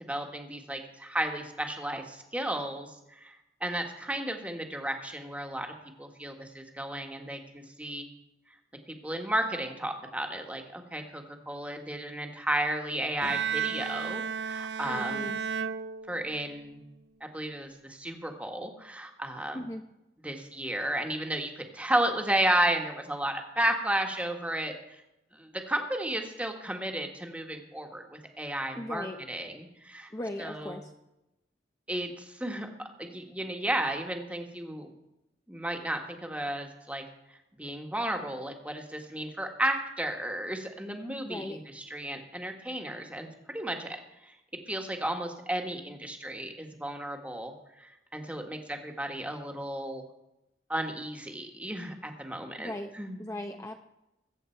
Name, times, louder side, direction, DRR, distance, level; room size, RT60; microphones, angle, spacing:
voice 1, 0.1-3.3 3.6-5.7 6.0-8.0 8.9-15.3 16.1-16.8 17.2-19.6 20.2-24.7 25.3-30.1 30.4-30.8 31.9-34.9 35.5-37.0 37.6-44.3 44.7-47.5 47.8-50.0 50.7-53.2, right 1 dB, 10° right, 4 dB, 1.5 m, -33 dB
Bowed string instrument, 13.2-16.6, right 7 dB, 70° right, 0.6 m, -33 dB
voice 2, 14.9-15.4 19.5-19.8 28.7-29.2 30.1-30.9 41.2-41.6 52.6-52.9 53.2-53.8, left 1 dB, 20° left, 4 dB, 0.7 m, -37 dB
21.5 x 8.0 x 4.5 m, 0.91 s
head